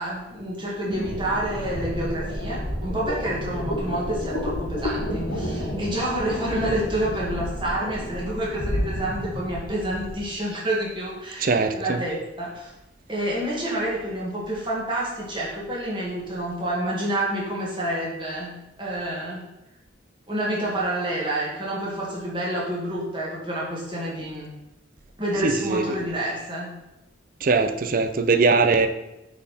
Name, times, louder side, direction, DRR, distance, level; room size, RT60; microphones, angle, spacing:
voice 1, 0.0-12.7 13.1-19.5 20.3-24.5 25.2-26.8, right 1 dB, 25° right, 1.9 m, -28 dB
sound 1, 0.8-10.3, equal, 75° left, 1.6 m, -30 dB
voice 2, 11.4-12.0 25.4-25.9 27.4-28.9, right 4 dB, 45° right, 0.5 m, -21 dB
7.1 x 4.2 x 4.2 m
head